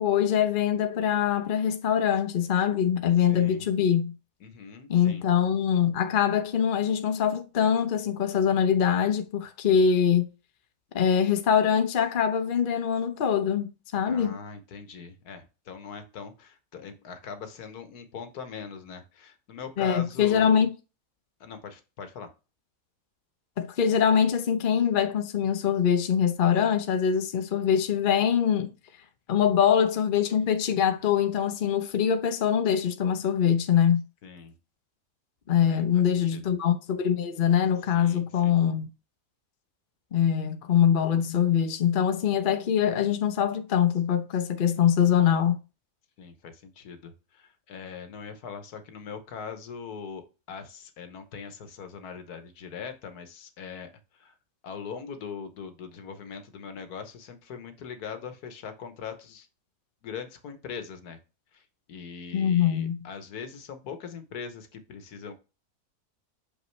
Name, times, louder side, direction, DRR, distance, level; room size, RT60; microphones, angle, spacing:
voice 1, 0.0-4.1 4.9-10.3 10.9-14.4 19.8-20.7 23.6-28.7 29.3-34.0 35.5-38.9 40.1-45.6 62.3-63.0, left 8 dB, 45° left, 0.7 m, -23 dB
voice 2, 3.3-3.7 4.4-5.2 14.1-20.6 21.4-22.3 34.2-34.5 35.7-36.4 37.9-38.6 46.2-54.3 54.6-59.5 60.0-61.2 61.5-61.6 61.9-65.4, left 6 dB, 75° left, 1.5 m, -41 dB
6.2 x 5.4 x 3.2 m
omnidirectional pair, 1.7 m